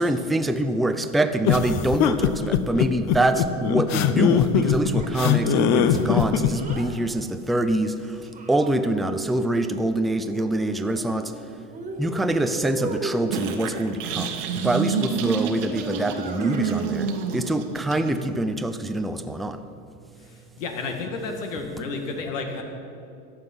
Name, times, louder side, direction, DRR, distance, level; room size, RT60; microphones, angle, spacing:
voice 1, 0.0-7.9 8.5-11.3 12.0-14.3 14.6-17.1 17.3-19.6, right 1 dB, ahead, 8 dB, 0.3 m, -25 dB
sound 1, 1.4-6.8, left 9 dB, 45° left, 0.8 m, -21 dB
Child speech kid speaking, 4.9-6.9 7.8-9.1 10.2-11.4 11.7-13.5 16.0-16.9, right 2 dB, 20° right, 1.7 m, -38 dB
sound 2, 13.3-18.3, right 5 dB, 75° right, 1.4 m, -28 dB
voice 2, 20.3-22.6, left 3 dB, 85° left, 3 dB, 2.1 m, -31 dB
14.5 x 9.7 x 5.5 m, 2.6 s
supercardioid pair, 120°, 37 cm